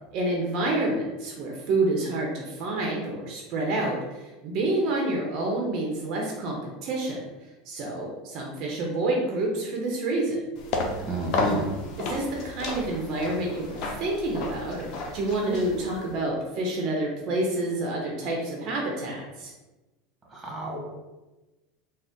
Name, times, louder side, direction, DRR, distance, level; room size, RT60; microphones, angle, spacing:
voice 1, 0.1-10.5 12.0-14.9 15.1-19.5, right 2 dB, 55° right, -1 dB, 0.7 m, -28 dB
sound 1, 10.6-16.2, left 2 dB, 55° left, 0.6 m, -33 dB
voice 2, 11.0-11.8 20.3-20.8, right 1 dB, 20° right, -3 dB, 1.3 m, -29 dB
3.8 x 2.1 x 3.5 m, 1.1 s
supercardioid pair, 105°, 0 cm